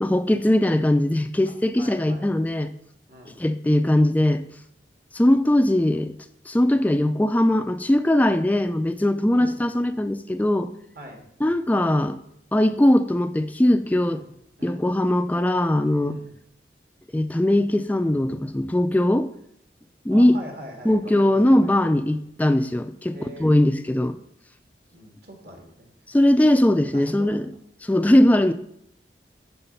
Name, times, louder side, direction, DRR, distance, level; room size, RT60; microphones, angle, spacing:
voice 1, 0.0-2.7 3.4-4.4 5.1-6.1 6.5-10.7 11.4-12.2 12.5-14.2 14.6-16.2 17.1-19.3 20.1-20.4 20.9-24.2 26.1-27.5 27.8-28.5, left 1 dB, 10° left, 9 dB, 0.3 m, -20 dB
voice 2, 1.5-2.3 3.1-3.4 9.3-9.6 10.9-11.2 14.0-14.3 14.6-14.8 16.1-16.3 20.1-22.1 23.1-23.6 24.9-25.9 26.9-27.6, right 1 dB, 55° right, 2 dB, 1.7 m, -42 dB
9.8 x 3.9 x 5.5 m, 0.71 s
head